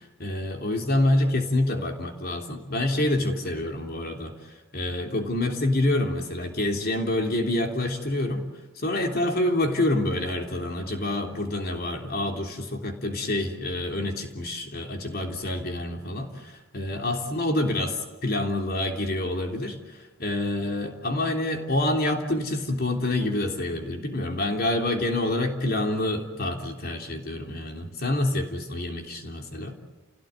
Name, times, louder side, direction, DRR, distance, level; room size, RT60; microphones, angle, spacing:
voice 1, 0.0-4.3 4.7-8.4 8.8-29.7, left 1 dB, 50° left, 3 dB, 3.4 m, -27 dB
29.5 x 17.0 x 9.5 m, 1.2 s
head